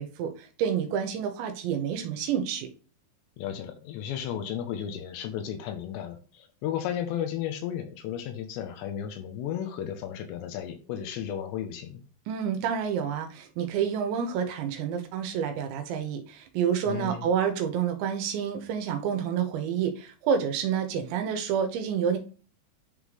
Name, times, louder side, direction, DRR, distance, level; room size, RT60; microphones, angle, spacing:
voice 1, 0.0-2.7 12.3-22.2, right 8 dB, 80° right, 5 dB, 3.1 m, -29 dB
voice 2, 3.4-12.0 16.9-17.3, left 9 dB, 85° left, 7 dB, 2.9 m, -34 dB
10.0 x 3.7 x 3.2 m, 0.37 s
omnidirectional pair, 5.2 m